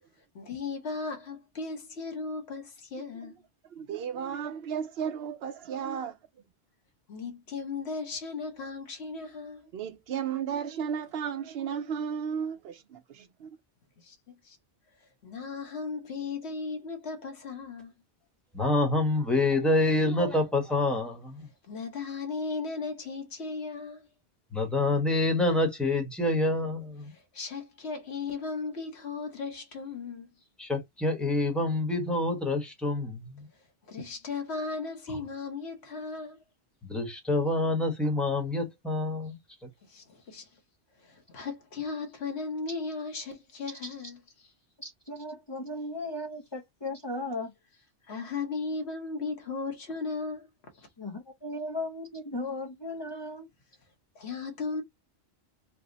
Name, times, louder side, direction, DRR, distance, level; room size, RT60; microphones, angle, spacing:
voice 1, 0.3-3.4 7.1-9.7 14.0-14.2 14.4-14.6 15.0-17.9 21.7-24.1 27.1-30.3 33.9-36.4 39.8-40.5 41.0-44.5 48.1-50.5 50.7-50.9 54.1-54.8, left 4 dB, 70° left, 1.3 m, -36 dB
voice 2, 3.7-6.2 9.7-13.5, right 7 dB, 65° right, 0.8 m, -34 dB
voice 3, 18.5-21.5 24.5-27.1 30.6-33.5 36.8-39.4, left 2 dB, ahead, 0.9 m, -27 dB
voice 4, 44.8-47.5 51.0-53.5, left 1 dB, 30° left, 0.5 m, -36 dB
3.3 x 2.1 x 3.8 m
omnidirectional pair, 1.2 m